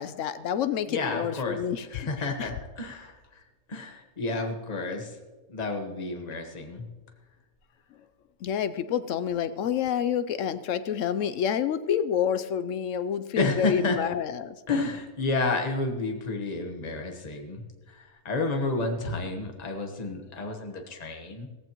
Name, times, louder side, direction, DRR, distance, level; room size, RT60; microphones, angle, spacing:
voice 1, 0.0-2.1 2.4-2.5 8.4-14.6, left 8 dB, 70° left, 13 dB, 0.8 m, -28 dB
voice 2, 0.9-3.4 3.7-5.2 5.5-6.9 13.3-14.0 14.7-21.5, left 3 dB, 30° left, 3 dB, 1.2 m, -31 dB
16.5 x 15.0 x 3.0 m, 1.3 s
omnidirectional pair, 1.7 m